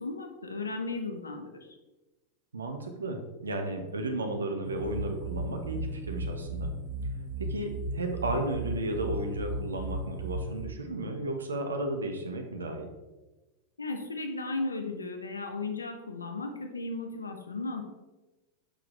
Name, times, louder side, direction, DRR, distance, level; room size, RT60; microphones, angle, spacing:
voice 1, 0.0-1.7 13.8-17.8, left 3 dB, 75° left, 5 dB, 0.8 m, -35 dB
voice 2, 2.5-6.7 7.4-12.9, right 2 dB, 70° right, 4 dB, 1.0 m, -34 dB
sound 1, 4.6-10.7, right 1 dB, 40° right, 0.9 m, -35 dB
6.7 x 6.0 x 3.2 m, 1.1 s
figure-of-eight pair, 90°, 0 cm